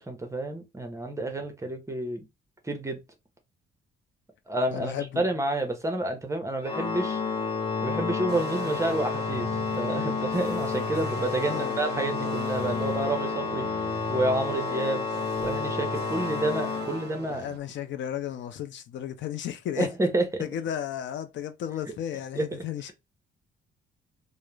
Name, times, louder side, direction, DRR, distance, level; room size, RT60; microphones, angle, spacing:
voice 1, 0.0-2.2 2.6-3.0 4.5-7.2 7.8-13.7 14.1-15.1 15.4-17.5 19.8-20.4 22.4-22.6, right 1 dB, 15° right, 0.7 m, -29 dB
voice 2, 4.7-5.2 11.4-11.8 17.3-19.9 20.4-22.9, left 10 dB, 65° left, 0.4 m, -34 dB
Organ, 6.6-17.5, left 5 dB, 25° left, 0.6 m, -30 dB
sound 1, 8.3-17.6, right 9 dB, 55° right, 0.5 m, -41 dB
2.3 x 2.0 x 3.1 m
cardioid pair, 90°, 20 cm